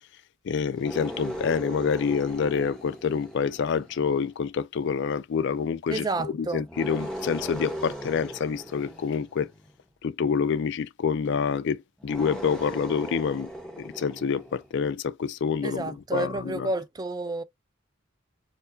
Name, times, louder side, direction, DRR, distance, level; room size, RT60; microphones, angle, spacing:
voice 1, 0.4-9.5 10.0-13.5 13.8-16.7, left 6 dB, 60° left, 0.4 m, -27 dB
sound 1, 0.7-4.3 6.7-9.8 12.0-14.7, equal, 5° left, 1.1 m, -38 dB
voice 2, 5.9-6.6 15.6-17.4, right 2 dB, 20° right, 0.4 m, -30 dB
4.4 x 2.5 x 2.3 m
head